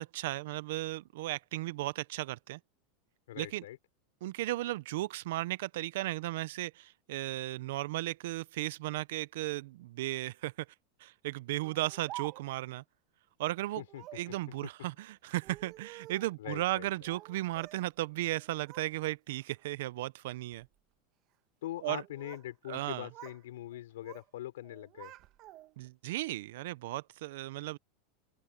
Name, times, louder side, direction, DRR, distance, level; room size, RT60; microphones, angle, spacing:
voice 1, 0.0-2.6 3.4-3.6 4.2-10.7 11.0-12.8 13.4-13.8 14.1-20.7 21.8-22.0 22.7-23.1 25.8-27.8, right 17 dB, 75° right, 0.6 m, -35 dB
voice 2, 3.3-3.8 13.8-14.3 16.4-16.9 21.6-25.1, left 14 dB, 85° left, 5.1 m, -42 dB
Speech, 11.6-12.7 13.9-14.3 15.3-16.4 17.1-17.9 18.2-18.9 19.3-19.7 20.3-20.7 21.8-22.5 22.8-23.4 23.7-24.3 24.6-25.9, right 15 dB, 45° right, 1.4 m, -50 dB
open air
supercardioid pair, 140°, 0 cm